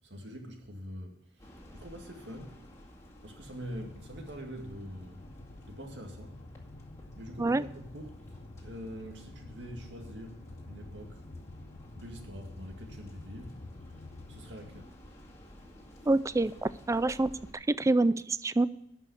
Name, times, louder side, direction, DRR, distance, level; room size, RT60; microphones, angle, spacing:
voice 1, 0.0-2.6 3.2-5.2 5.4-6.4 7.2-11.2 11.9-14.9 16.0-16.1, equal, 75° right, 2 dB, 2.1 m, -45 dB
sound 1, 1.4-17.5, equal, 15° left, 2.1 m, -53 dB
sound 2, 3.8-14.9, left 2 dB, 65° left, 0.8 m, -49 dB
voice 2, 16.1-18.7, right 2 dB, 15° right, 17 dB, 0.3 m, -27 dB
12.0 x 5.6 x 7.9 m, 0.80 s
head